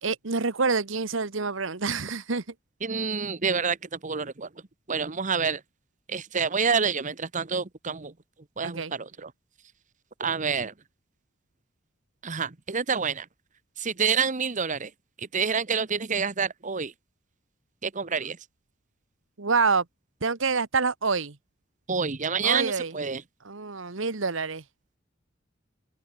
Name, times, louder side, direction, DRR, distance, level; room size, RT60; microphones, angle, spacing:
voice 1, 0.0-2.4 8.6-8.9 19.4-19.8 20.2-21.4 22.4-22.9 23.4-24.6, right 4 dB, 65° right, 1.3 m, -27 dB
voice 2, 2.8-4.5 4.9-5.6 6.1-8.1 8.6-9.3 10.2-10.7 12.2-13.3 13.8-14.9 15.2-16.9 17.8-18.4 21.9-23.2, right 5 dB, 40° right, 1.1 m, -28 dB
head